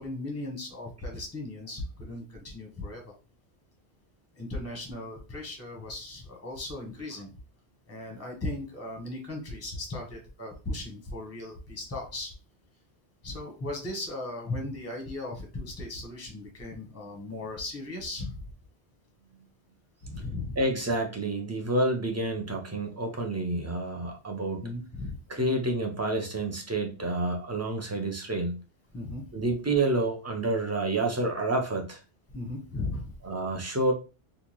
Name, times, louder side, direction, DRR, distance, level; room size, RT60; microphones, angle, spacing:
voice 1, 0.0-3.1 4.4-7.3 7.9-12.3 13.2-18.3 20.0-20.6 24.6-25.1 28.9-29.2 32.3-33.1, left 2 dB, 15° left, 2 dB, 0.9 m, -37 dB
voice 2, 20.6-24.6 25.3-28.6 29.3-32.0 33.2-33.9, right 2 dB, 20° right, 3 dB, 0.5 m, -29 dB
3.8 x 2.4 x 2.9 m, 0.32 s
omnidirectional pair, 1.1 m